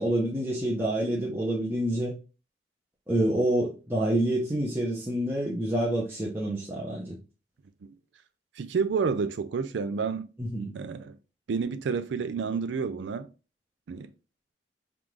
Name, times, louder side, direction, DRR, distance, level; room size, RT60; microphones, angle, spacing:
voice 1, 0.0-2.1 3.1-7.2 10.4-10.7, right 1 dB, 15° right, 0.8 m, -27 dB
voice 2, 8.6-10.3 10.7-11.2 11.5-13.3 13.9-14.1, right 5 dB, 85° right, 0.4 m, -29 dB
3.7 x 2.5 x 4.5 m
head